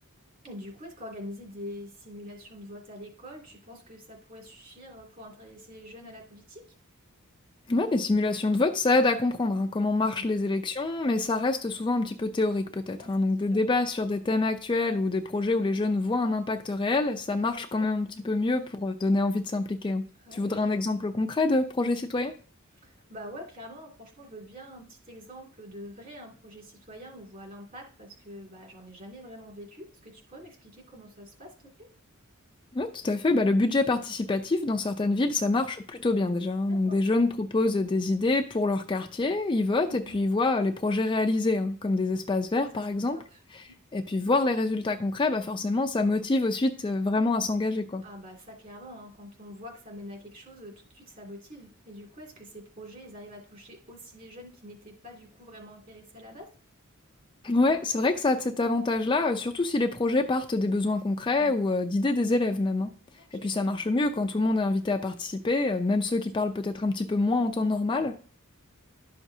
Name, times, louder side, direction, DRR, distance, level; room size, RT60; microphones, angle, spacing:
voice 1, 0.4-6.6 10.0-10.3 13.0-13.1 13.5-13.6 17.5-17.9 20.2-20.7 22.8-31.5 31.8-31.9 35.2-35.5 36.7-37.0 39.8-40.2 42.7-42.8 43.1-43.4 48.0-56.5 61.4-61.5 63.3-63.5, equal, 40° right, 0 dB, 2.4 m, -45 dB
voice 2, 7.7-20.0 20.3-22.3 32.7-43.2 43.9-48.0 57.4-62.9 63.3-68.3, left 2 dB, 20° left, 5 dB, 0.4 m, -26 dB
12.0 x 6.0 x 2.7 m, 0.42 s
head